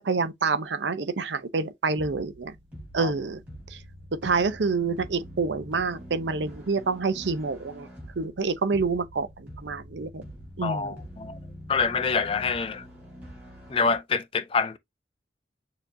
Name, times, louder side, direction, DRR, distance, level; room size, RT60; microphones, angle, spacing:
voice 1, 0.0-2.5 2.9-3.4 4.2-7.9 8.2-10.2 10.6-11.0, right 4 dB, 80° right, 0.7 m, -27 dB
sound 1, 2.0-14.0, equal, 10° right, 3.3 m, -45 dB
voice 2, 10.6-11.4 11.7-12.8 13.7-14.8, left 5 dB, 30° left, 0.4 m, -26 dB
6.8 x 2.9 x 2.6 m
head